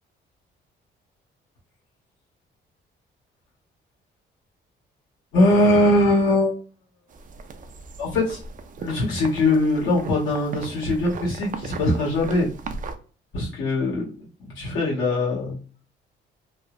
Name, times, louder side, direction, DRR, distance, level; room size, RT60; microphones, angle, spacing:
voice 1, 5.3-6.6 8.0-8.4 8.8-12.5 13.3-14.0 14.4-15.6, left 1 dB, 80° left, -5 dB, 1.4 m, -21 dB
sound 1, 7.1-12.9, right 4 dB, 40° right, 0.4 m, -38 dB
2.9 x 2.1 x 2.4 m, 0.38 s
cardioid pair, 90°, 20 cm